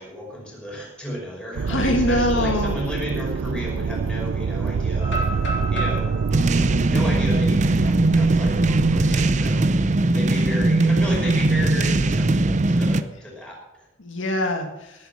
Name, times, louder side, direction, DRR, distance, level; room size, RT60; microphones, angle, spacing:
voice 1, 0.0-5.2 5.7-6.1 6.5-13.9, equal, 5° left, -3 dB, 5.6 m, -33 dB
sound 1, 1.5-9.3, right 5 dB, 85° right, 0.4 m, -26 dB
voice 2, 1.6-2.8 14.0-15.1, left 1 dB, 85° left, 3 dB, 2.1 m, -24 dB
sound 2, 5.0-8.9 9.3-9.4 9.9-10.2 11.6-12.4, right 1 dB, 60° left, 3.7 m, -34 dB
sound 3, 6.3-13.0, right 2 dB, 40° right, 0.6 m, -20 dB
18.5 x 8.8 x 6.2 m, 0.92 s
head